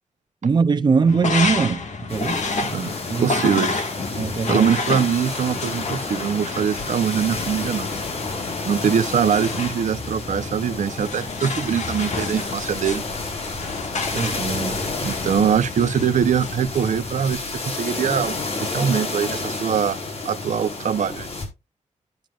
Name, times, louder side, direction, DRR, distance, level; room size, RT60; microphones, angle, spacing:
voice 1, 0.4-1.8 2.1-2.4 3.1-3.3 4.2-4.7 14.1-14.8, right 5 dB, 35° right, 0.5 m, -21 dB
sound 1, 1.1-17.3, left 4 dB, 70° left, 1.7 m, -30 dB
sound 2, 2.1-21.5, left 3 dB, 55° left, 4.2 m, -31 dB
voice 2, 3.2-3.9 4.5-7.9 8.6-13.0 15.0-20.0 20.2-21.3, right 8 dB, 75° right, 0.8 m, -22 dB
12.0 x 9.1 x 2.5 m
wide cardioid pair, 150°, 13 cm